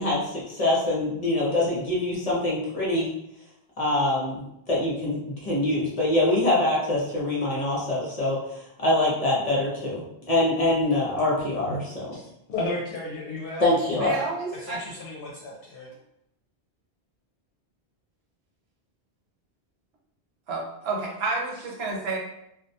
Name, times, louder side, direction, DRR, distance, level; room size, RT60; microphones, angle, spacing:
voice 1, 0.0-3.1 3.8-8.4 8.8-12.2 13.6-14.1, left 1 dB, 40° left, -6 dB, 0.7 m, -24 dB
voice 2, 12.1-13.7 14.5-15.9, left 2 dB, 70° left, -3 dB, 0.8 m, -34 dB
voice 3, 14.0-14.8 20.5-22.2, right 3 dB, 70° right, -1 dB, 0.9 m, -30 dB
2.2 x 2.2 x 2.6 m, 0.80 s
omnidirectional pair, 1.1 m